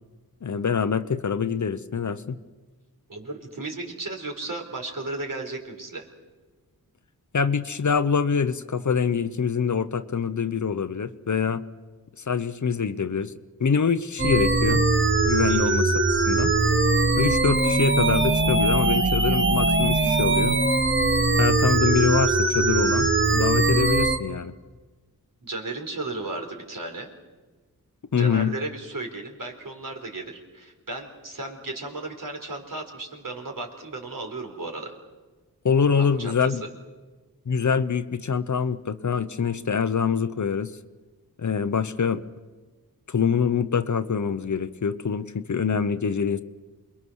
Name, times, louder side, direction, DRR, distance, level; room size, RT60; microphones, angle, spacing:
voice 1, 0.4-2.4 7.3-11.6 12.3-13.3 13.6-14.8 15.2-16.5 17.2-20.6 21.4-24.5 28.1-28.5 35.6-36.6 37.5-40.7 41.4-42.2 43.1-46.4, left 6 dB, 50° left, 12 dB, 0.9 m, -25 dB
voice 2, 3.1-6.1 15.5-15.6 25.4-27.1 28.2-34.9 36.0-36.6, right 2 dB, 60° right, 3 dB, 4.3 m, -35 dB
sound 1, 14.2-24.2, right 3 dB, 30° right, 1.4 m, -21 dB
28.0 x 22.0 x 6.4 m, 1.3 s
wide cardioid pair, 85°, 36 cm